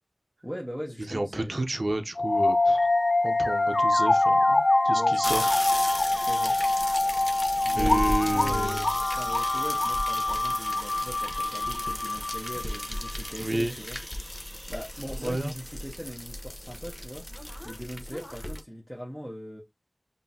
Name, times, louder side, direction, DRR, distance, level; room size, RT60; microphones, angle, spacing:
voice 1, 0.4-1.6 4.9-5.5 6.2-6.6 7.7-8.8 9.1-14.0 14.7-17.2 17.6-19.6, equal, 5° left, 1.2 m, -40 dB
voice 2, 1.1-2.9 3.2-5.4 7.7-8.9 13.4-13.7 15.2-15.5, right 1 dB, 65° right, 0.7 m, -31 dB
sound 1, 2.2-13.1, left 2 dB, 65° left, 0.3 m, -25 dB
sound 2, 5.2-18.6, left 1 dB, 25° left, 1.0 m, -36 dB
5.4 x 2.7 x 2.7 m
wide cardioid pair, 40°, 0 cm